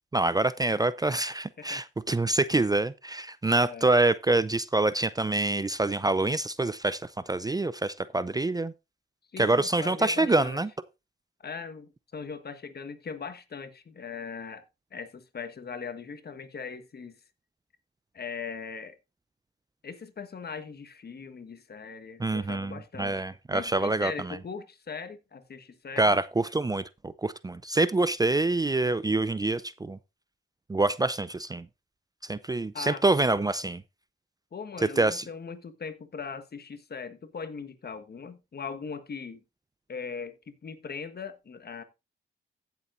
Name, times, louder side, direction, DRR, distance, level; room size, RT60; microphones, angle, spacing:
voice 1, 0.1-8.7 9.4-10.7 22.2-24.4 26.0-30.0 30.7-31.7 32.2-33.8 34.8-35.3, right 2 dB, 20° right, 0.5 m, -26 dB
voice 2, 3.6-3.9 9.3-10.6 11.4-14.6 14.9-17.2 18.1-18.9 19.8-23.2 23.5-26.2 32.7-33.0 34.5-39.4 39.9-41.8, left 5 dB, 50° left, 1.5 m, -40 dB
15.5 x 7.1 x 2.6 m
supercardioid pair, 55°, 21 cm